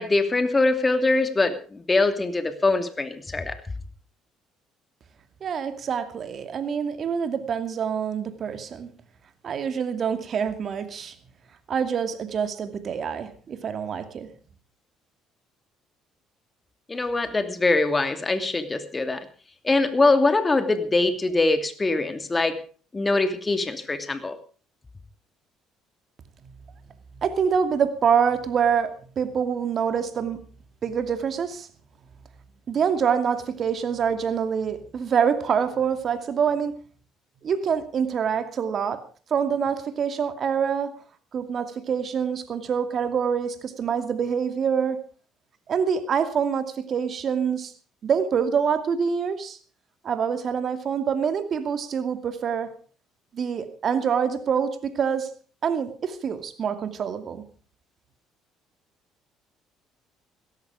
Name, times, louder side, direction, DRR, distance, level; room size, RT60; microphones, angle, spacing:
voice 1, 0.0-3.6 16.9-19.2 19.6-22.6 22.9-24.4, left 3 dB, 25° left, 9 dB, 2.5 m, -23 dB
voice 2, 5.4-8.9 9.4-11.1 11.7-14.3 27.2-30.4 30.8-31.7 32.7-36.7 37.4-39.0 39.3-40.9 41.3-45.0 45.7-47.7 48.0-49.6 50.0-52.7 53.3-55.3 55.6-57.4, right 7 dB, 50° right, 9 dB, 2.5 m, -26 dB
16.5 x 14.0 x 5.0 m, 0.41 s
hypercardioid pair, 60°, 0 cm